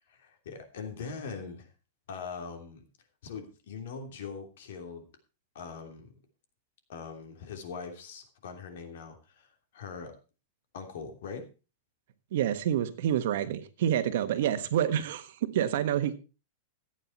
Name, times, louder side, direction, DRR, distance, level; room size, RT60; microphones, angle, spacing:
voice 1, 0.1-1.7 2.1-2.8 3.2-5.1 5.5-6.1 6.9-10.1 10.7-11.5, left 5 dB, 60° left, 3.0 m, -41 dB
voice 2, 12.3-16.1, right 10 dB, 55° right, 1.4 m, -28 dB
14.0 x 9.1 x 4.5 m
supercardioid pair, 175°, 0 cm